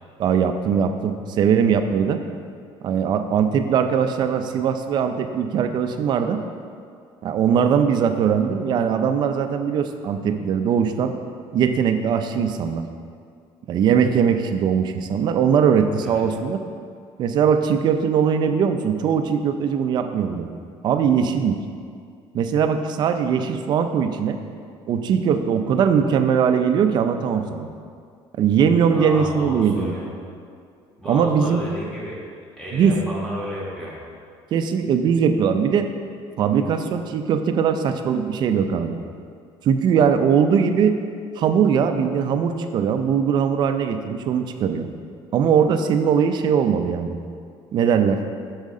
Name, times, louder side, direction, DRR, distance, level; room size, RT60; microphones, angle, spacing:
voice 1, 0.2-2.2 2.8-6.4 7.2-11.1 11.5-12.9 13.7-16.6 17.2-20.5 20.8-21.6 22.3-24.4 24.9-27.7 28.4-29.9 31.1-31.6 32.7-33.0 34.5-35.9 36.4-39.0 39.6-41.0 41.4-44.9 45.3-47.2 47.7-48.2, right 7 dB, 45° right, 8 dB, 0.5 m, -20 dB
voice 2, 28.9-30.1 31.0-32.2 32.6-34.0, equal, 5° left, -6 dB, 1.7 m, -32 dB
7.4 x 6.4 x 3.7 m, 2.2 s
cardioid pair, 155°, 11 cm